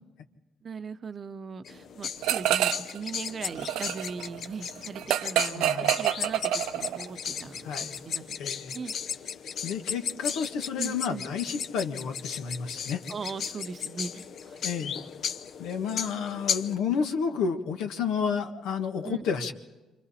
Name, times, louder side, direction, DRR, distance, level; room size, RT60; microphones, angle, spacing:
voice 1, 0.6-8.9 9.7-9.8 10.8-11.3 13.1-14.7 19.0-19.3, right 5 dB, 40° right, 11 dB, 0.8 m, -39 dB
sound 1, 1.6-16.7, left 7 dB, 60° left, 0.7 m, -36 dB
sound 2, 2.2-3.0 3.3-7.1, right 12 dB, 85° right, 0.7 m, -27 dB
voice 2, 5.5-5.9 7.6-7.9 8.4-8.7 9.6-13.0 14.6-15.0 15.6-19.5, left 6 dB, 85° left, 5 dB, 1.5 m, -31 dB
28.5 x 25.5 x 4.3 m, 1.2 s
cardioid pair, 100°, 0 cm